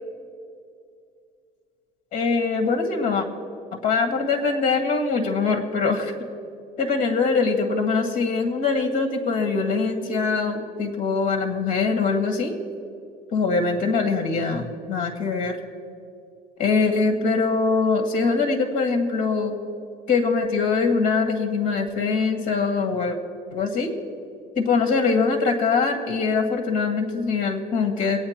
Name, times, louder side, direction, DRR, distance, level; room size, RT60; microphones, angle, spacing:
voice 1, 2.1-3.3 3.7-6.1 6.8-12.5 13.3-15.6 16.6-19.6 20.1-23.2 23.5-23.9 24.5-28.2, left 4 dB, 55° left, 3 dB, 1.9 m, -23 dB
24.5 x 9.4 x 2.9 m, 2.4 s
cardioid pair, 125°, 16 cm